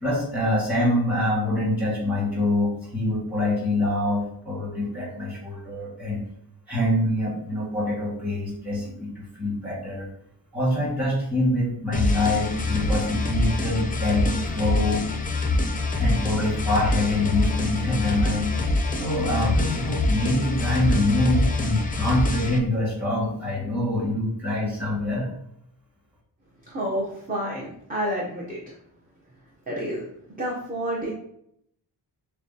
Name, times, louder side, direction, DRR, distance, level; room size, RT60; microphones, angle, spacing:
voice 1, 0.0-6.2 6.7-10.1 10.5-15.1 16.0-18.5 19.0-25.3, left 1 dB, 5° right, -5 dB, 1.7 m, -25 dB
sound 1, 11.9-22.6, left 2 dB, 20° left, 0.4 m, -25 dB
voice 2, 26.7-28.7 29.7-30.0 30.4-31.1, equal, 20° right, -4 dB, 0.7 m, -29 dB
6.6 x 2.2 x 2.7 m, 0.72 s
wide cardioid pair, 170°, 45 cm